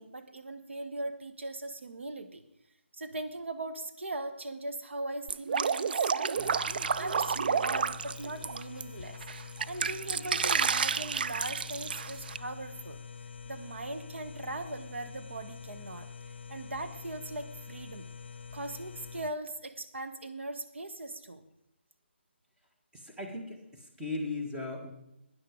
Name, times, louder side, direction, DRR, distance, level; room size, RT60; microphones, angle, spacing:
voice 1, 0.0-2.4 2.9-6.5 7.0-9.2 9.6-13.0 13.5-16.1 16.5-18.1 18.5-21.4, right 2 dB, 75° right, 7 dB, 1.2 m, -39 dB
Drip, 5.3-8.8 9.2-12.4, right 6 dB, 50° right, 0.4 m, -30 dB
sound 1, 6.4-19.3, left 6 dB, 60° left, 0.6 m, -46 dB
voice 2, 22.9-24.9, left 2 dB, 10° right, -1 dB, 1.9 m, -37 dB
12.5 x 10.0 x 4.9 m, 0.85 s
figure-of-eight pair, 150°, 6 cm